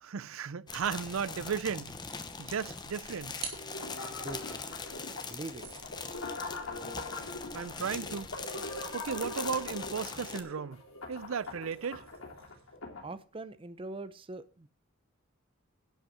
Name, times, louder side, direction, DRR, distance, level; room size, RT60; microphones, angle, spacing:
voice 1, 0.0-1.9 2.4-3.3 7.5-8.3 8.9-10.8 11.1-12.1, right 6 dB, 80° right, 0.5 m, -35 dB
sound 1, 0.7-10.4, left 4 dB, 20° left, 0.9 m, -42 dB
sound 2, 3.4-4.5 5.2-12.8, right 6 dB, 50° right, 2.8 m, -51 dB
sound 3, 3.5-13.1, left 2 dB, 90° left, 3.2 m, -42 dB
voice 2, 4.2-4.6 5.2-5.6 13.0-14.7, right 2 dB, 25° right, 0.6 m, -42 dB
11.5 x 5.5 x 7.1 m
head